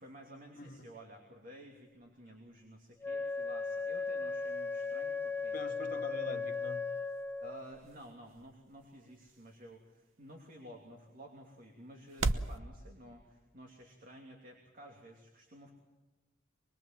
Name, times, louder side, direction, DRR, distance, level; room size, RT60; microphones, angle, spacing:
voice 1, 0.0-5.6 6.3-6.5 7.4-15.7, equal, 45° right, 1 dB, 3.0 m, -53 dB
Wind instrument woodwind instrument, 3.0-7.7, left 4 dB, 10° left, 0.9 m, -37 dB
voice 2, 5.5-6.8, left 2 dB, 45° left, 1 dB, 2.1 m, -43 dB
sound 1, 6.3-12.6, right 3 dB, 90° right, 1.0 m, -42 dB
25.0 x 22.0 x 7.5 m, 1.1 s
head